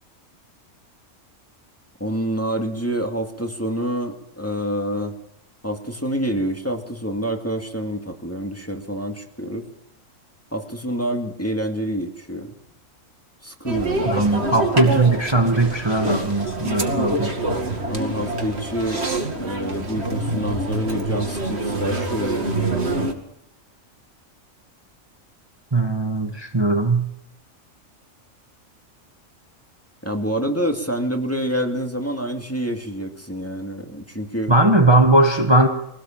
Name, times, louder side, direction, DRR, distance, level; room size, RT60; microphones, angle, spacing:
voice 1, 2.0-5.2 5.6-9.7 10.5-12.5 13.4-14.7 17.9-22.7 30.0-34.5, equal, 10° left, 3 dB, 2.3 m, -27 dB
sound 1, 13.7-23.1, right 2 dB, 55° right, 2.7 m, -26 dB
voice 2, 14.0-17.3 25.7-27.1 34.5-35.7, right 2 dB, 20° right, 3 dB, 1.5 m, -18 dB
23.5 x 18.0 x 7.4 m, 0.77 s
omnidirectional pair, 1.4 m